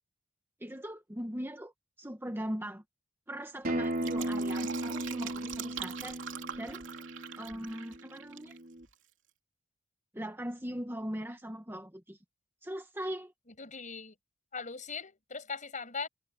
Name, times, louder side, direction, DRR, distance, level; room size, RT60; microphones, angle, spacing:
voice 1, 0.6-1.7 2.0-2.8 3.3-6.2 6.5-6.8 7.4-8.6 10.1-12.2 12.6-13.3, equal, 10° right, 1.4 m, -40 dB
Acoustic guitar, 3.6-8.8, right 1 dB, 50° right, 4.2 m, -36 dB
Fill (with liquid), 3.8-8.6 8.8-8.9, right 8 dB, 75° right, 3.2 m, -43 dB
voice 2, 4.1-4.5 13.6-14.2 14.5-16.1, left 4 dB, 40° left, 6.9 m, -40 dB
head